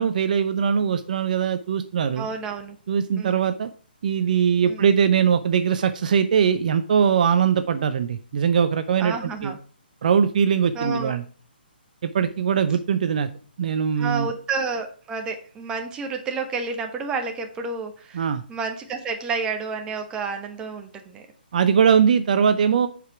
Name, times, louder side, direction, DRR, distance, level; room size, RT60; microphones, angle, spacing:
voice 1, 0.0-2.3 2.9-3.7 4.0-9.1 9.4-9.5 10.0-11.2 12.0-13.3 13.6-14.3 18.1-18.4 21.5-22.9, right 7 dB, 50° right, 10 dB, 0.7 m, -21 dB
voice 2, 2.1-2.8 3.2-3.5 4.6-4.9 9.0-9.6 10.7-11.2 14.0-21.2, right 4 dB, 15° right, 5 dB, 1.3 m, -30 dB
8.0 x 5.1 x 5.9 m, 0.41 s
hypercardioid pair, 145°, 6 cm